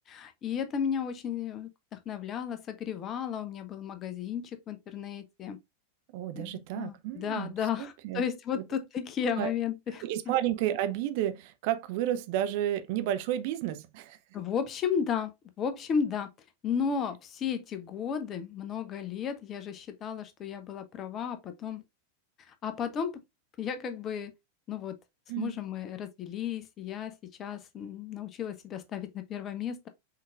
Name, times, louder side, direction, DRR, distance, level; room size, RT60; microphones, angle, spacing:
voice 1, 0.1-5.6 6.3-10.0 14.3-16.3 16.6-21.8 22.5-23.2 23.6-24.3 24.7-24.9 25.4-29.9, left 7 dB, 30° left, 0.8 m, -34 dB
voice 2, 6.1-8.2 8.5-8.7 9.4-9.5 10.0-14.2 25.3-25.6, right 12 dB, 50° right, 0.5 m, -31 dB
5.7 x 3.7 x 2.4 m
figure-of-eight pair, 90°, 0 cm